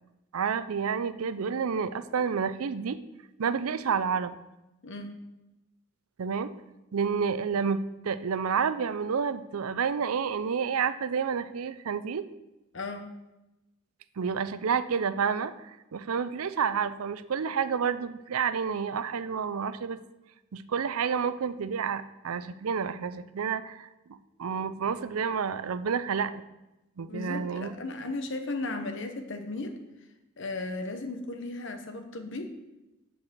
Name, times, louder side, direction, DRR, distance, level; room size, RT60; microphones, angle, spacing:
voice 1, 0.3-3.0 3.4-4.3 6.2-6.5 6.9-12.2 14.2-20.0 20.5-23.9 24.4-26.4 27.0-27.7, right 6 dB, 85° right, 13 dB, 0.5 m, -29 dB
voice 2, 4.8-5.1 12.7-13.1 27.1-29.8 30.4-32.5, left 2 dB, 55° left, 7 dB, 1.0 m, -35 dB
8.8 x 4.7 x 7.3 m, 0.98 s
head